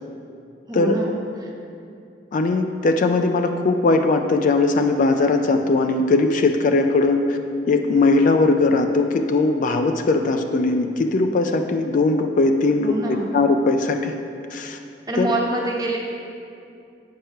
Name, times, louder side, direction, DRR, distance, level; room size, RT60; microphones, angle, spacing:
voice 1, 0.7-1.5 12.8-13.3 15.1-16.0, right 2 dB, 20° right, -2 dB, 1.0 m, -26 dB
voice 2, 2.3-7.4 7.7-14.1 14.5-14.8 15.2-15.3, left 3 dB, 45° left, 5 dB, 0.4 m, -19 dB
7.8 x 4.7 x 5.6 m, 2.5 s
head